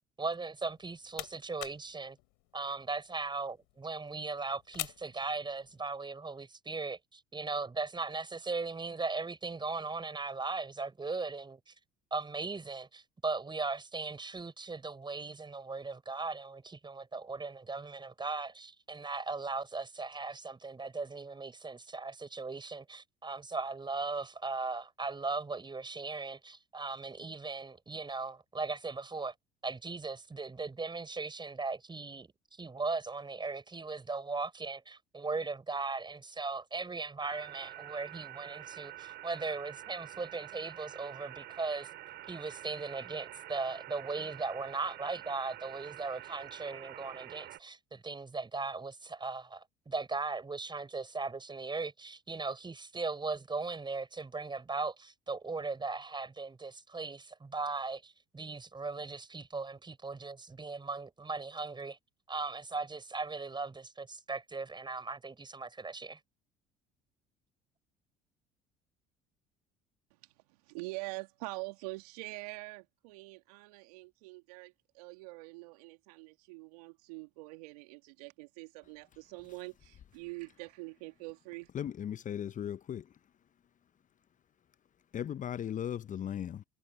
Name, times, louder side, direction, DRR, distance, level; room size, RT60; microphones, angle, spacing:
voice 1, 0.2-2.2 2.5-11.7 12.1-29.3 29.6-41.9 42.3-62.0 62.3-66.2, right 3 dB, 25° right, 6.4 m, -38 dB
sound 1, 0.6-6.0, left 31 dB, 70° left, 5.6 m, -47 dB
sound 2, 37.2-47.6, right 14 dB, 60° right, 4.1 m, -47 dB
voice 2, 70.7-81.7, right 25 dB, 75° right, 2.5 m, -45 dB
voice 3, 81.7-83.1 85.1-86.6, left 9 dB, 40° left, 0.8 m, -37 dB
hypercardioid pair, 60°, 20 cm